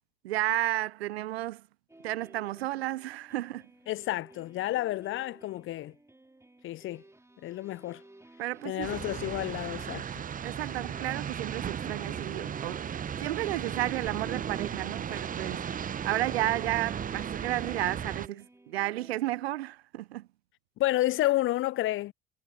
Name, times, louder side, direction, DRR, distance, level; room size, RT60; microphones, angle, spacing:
voice 1, 0.2-1.6 2.0-3.7 8.4-9.0 10.4-15.7 16.0-20.3, right 16 dB, 75° right, 0.7 m, -32 dB
sound 1, 1.9-19.7, right 1 dB, 10° right, 4.0 m, -56 dB
voice 2, 3.9-5.9 6.6-7.0 7.4-8.0 8.6-10.2 20.8-22.1, left 16 dB, 40° left, 0.6 m, -30 dB
sound 2, 8.8-18.3, right 8 dB, 25° right, 0.7 m, -36 dB
figure-of-eight pair, 65°, 31 cm